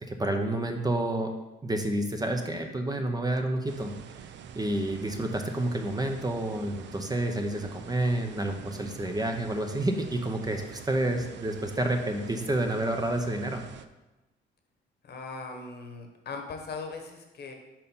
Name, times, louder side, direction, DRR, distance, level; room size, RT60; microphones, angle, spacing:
voice 1, 0.0-1.3 1.6-3.9 4.5-13.7, right 1 dB, 20° right, 4 dB, 0.7 m, -29 dB
sound 1, 3.7-13.9, right 8 dB, 65° right, 0.4 m, -46 dB
voice 2, 15.0-17.5, left 4 dB, 55° left, 3 dB, 1.2 m, -40 dB
5.4 x 4.5 x 5.4 m, 1.1 s
cardioid pair, 90°, 20 cm